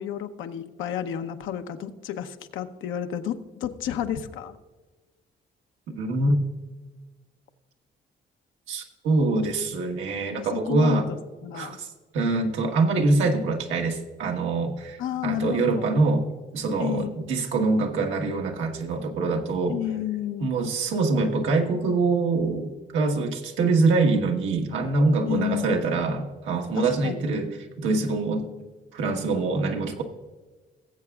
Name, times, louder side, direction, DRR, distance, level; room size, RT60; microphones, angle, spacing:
voice 1, 0.0-4.6 10.4-11.8 15.0-15.9 16.8-17.3 19.7-20.5 25.2-25.8 26.7-27.3, left 10 dB, 85° left, 8 dB, 0.8 m, -31 dB
voice 2, 5.9-6.3 8.7-11.1 11.5-11.9 12.1-16.3 16.5-19.8 20.4-27.6 27.8-28.5 28.9-30.0, right 3 dB, 90° right, 2 dB, 1.4 m, -24 dB
19.0 x 7.9 x 2.4 m, 1.3 s
cardioid pair, 90°, 20 cm